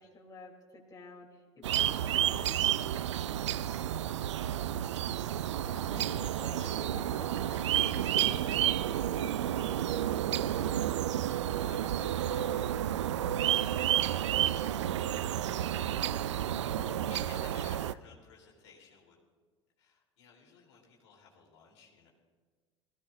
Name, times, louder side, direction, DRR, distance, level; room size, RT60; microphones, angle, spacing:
voice 1, 0.0-2.7 5.3-10.0 14.7-17.5, left 4 dB, 25° left, -1 dB, 3.1 m, -52 dB
sound 1, 1.6-17.9, right 11 dB, 80° right, 0.4 m, -31 dB
voice 2, 11.2-14.5 16.2-16.5 16.8-19.2 19.8-22.1, left 5 dB, 70° left, -2 dB, 3.4 m, -58 dB
22.5 x 16.5 x 2.6 m, 1.4 s
figure-of-eight pair, 70°, 15 cm